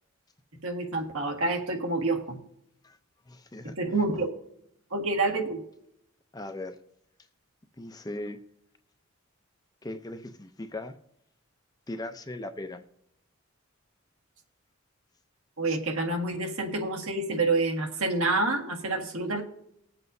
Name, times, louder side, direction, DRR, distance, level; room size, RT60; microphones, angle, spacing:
voice 1, 0.6-2.4 3.6-4.3 4.9-5.6 15.6-19.4, right 2 dB, 75° right, 3 dB, 1.7 m, -28 dB
voice 2, 3.3-3.8 6.3-6.8 7.8-8.4 9.8-11.0 11.9-12.8, left 1 dB, 15° left, 8 dB, 0.5 m, -38 dB
20.0 x 7.7 x 2.7 m, 0.75 s
head